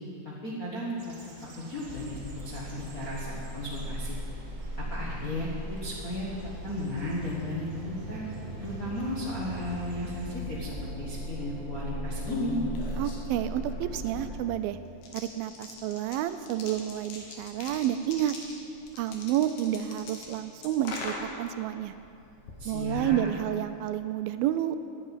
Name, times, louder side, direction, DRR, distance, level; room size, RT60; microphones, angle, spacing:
voice 1, 0.2-1.1 1.6-4.2 4.8-6.3 6.6-8.2 8.6-12.6 22.6-23.3, left 1 dB, 50° left, -6 dB, 1.0 m, -35 dB
sound 1, 1.0-10.3, right 2 dB, 45° right, 2.6 m, -51 dB
sound 2, 1.8-14.4, equal, 20° left, 2.8 m, -38 dB
sound 3, 10.0-24.0, left 3 dB, 70° left, 3.1 m, -44 dB
voice 2, 13.0-14.8 15.1-18.4 19.0-21.9 22.7-24.8, right 12 dB, 85° right, 11 dB, 2.3 m, -30 dB
11.5 x 8.4 x 9.0 m, 2.7 s
omnidirectional pair, 4.2 m